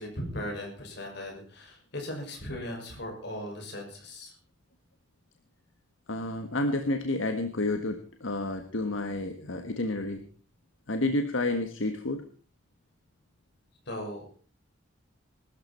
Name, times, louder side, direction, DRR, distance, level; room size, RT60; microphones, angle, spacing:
voice 1, 0.0-4.3 13.9-14.3, left 1 dB, 60° left, 2 dB, 6.3 m, -38 dB
voice 2, 6.1-10.2 10.9-12.2, left 2 dB, 80° left, 6 dB, 1.5 m, -30 dB
21.0 x 13.0 x 4.4 m, 0.40 s
head